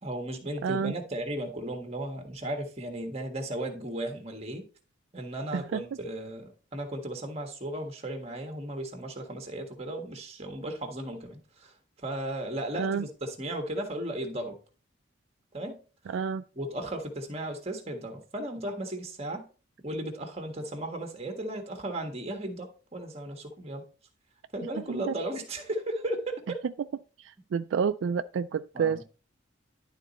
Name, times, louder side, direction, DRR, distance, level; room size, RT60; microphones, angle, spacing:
voice 1, 0.0-4.6 5.1-14.6 15.5-15.8 16.5-19.5 19.8-23.8 24.5-26.6 28.7-29.0, right 1 dB, 30° right, 1.5 m, -35 dB
voice 2, 0.6-0.9 5.5-5.8 12.8-13.1 16.1-16.4 24.9-25.1 27.2-29.0, right 6 dB, 70° right, 0.3 m, -29 dB
11.5 x 4.0 x 4.2 m
head